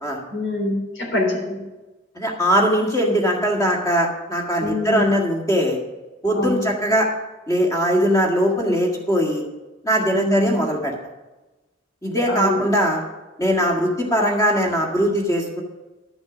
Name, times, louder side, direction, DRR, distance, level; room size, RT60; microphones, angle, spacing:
voice 1, 0.3-1.6 4.6-5.2 6.4-6.6 10.1-10.7 12.3-12.6, left 1 dB, 85° left, 1 dB, 3.6 m, -24 dB
voice 2, 2.2-5.8 6.2-7.1 7.5-9.4 9.8-10.9 12.0-13.0 13.4-15.6, equal, 20° left, 0 dB, 1.9 m, -20 dB
12.0 x 6.1 x 6.1 m, 1.1 s
head